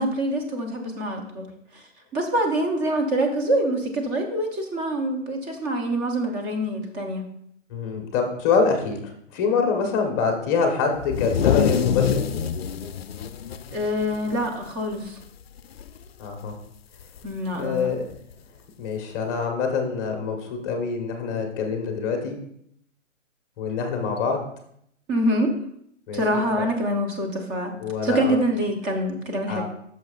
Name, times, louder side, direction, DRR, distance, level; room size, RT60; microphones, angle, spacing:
voice 1, 0.0-1.5 1.7-1.8 2.1-7.2 13.7-15.2 17.2-17.9 25.1-25.5 26.1-27.7 28.0-29.6, right 1 dB, 15° right, 3 dB, 0.8 m, -25 dB
voice 2, 7.7-9.0 9.3-12.2 16.2-16.5 17.5-18.0 18.8-22.3 23.6-24.4 26.1-26.4 27.8-28.4 29.5-29.6, left 5 dB, 20° left, 3 dB, 1.1 m, -25 dB
sound 1, 11.0-14.7 15.1-15.2 15.6-16.0 17.2-17.3 18.3-18.4, left 8 dB, 50° left, 0.5 m, -25 dB
10.5 x 6.5 x 2.4 m, 0.71 s
hypercardioid pair, 155°, 38 cm